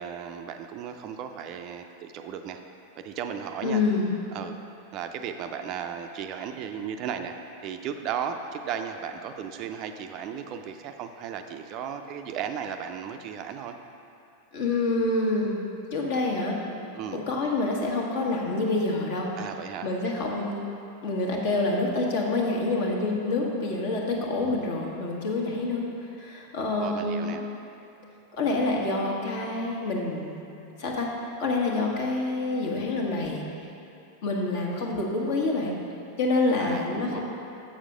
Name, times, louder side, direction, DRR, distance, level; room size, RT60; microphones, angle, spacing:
voice 1, 0.0-2.6 3.0-3.8 4.3-4.5 4.9-7.4 7.6-13.7 16.9-17.2 19.4-19.9 26.8-27.5 36.6-37.2, right 8 dB, 40° right, 6 dB, 0.4 m, -35 dB
voice 2, 3.6-4.1 14.5-15.7 15.9-16.6 17.1-19.3 19.8-20.7 21.0-27.4 28.3-30.4 30.8-31.1 31.4-33.4 34.2-35.7 36.2-37.2, left 2 dB, 50° left, -1 dB, 1.4 m, -27 dB
7.4 x 6.4 x 5.0 m, 2.7 s
figure-of-eight pair, 90°, 0 cm